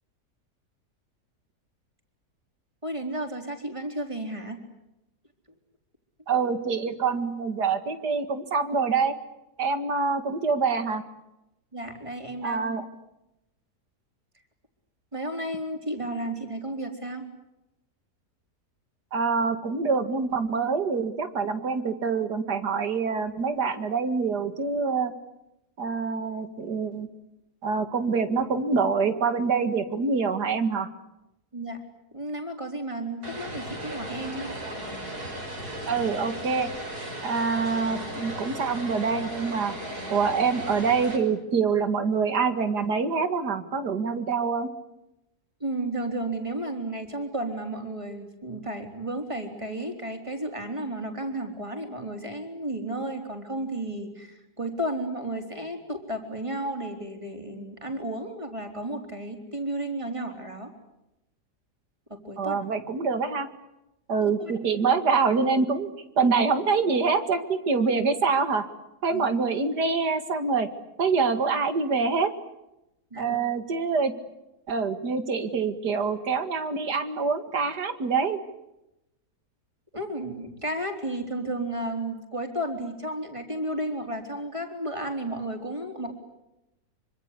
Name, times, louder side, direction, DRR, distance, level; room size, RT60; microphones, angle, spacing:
voice 1, 2.8-4.6 11.7-12.7 15.1-17.2 31.5-31.8 32.1-34.5 45.6-60.7 62.1-62.6 64.2-64.5 69.1-69.2 73.1-73.4 79.9-86.1, right 1 dB, 20° right, 4 dB, 4.1 m, -33 dB
voice 2, 6.3-9.1 9.6-11.0 12.4-12.8 19.1-25.1 25.8-27.1 27.6-30.9 35.9-36.7 37.2-39.7 40.1-44.7 62.4-63.5 64.1-65.9 66.2-68.6 69.0-70.7 71.0-72.3 73.2-74.1 74.7-78.4, right 5 dB, 90° right, 9 dB, 2.6 m, -25 dB
Vehicle, 33.2-41.2, right 1 dB, 70° right, 6.5 m, -36 dB
25.5 x 25.0 x 8.4 m, 0.91 s
omnidirectional pair, 1.7 m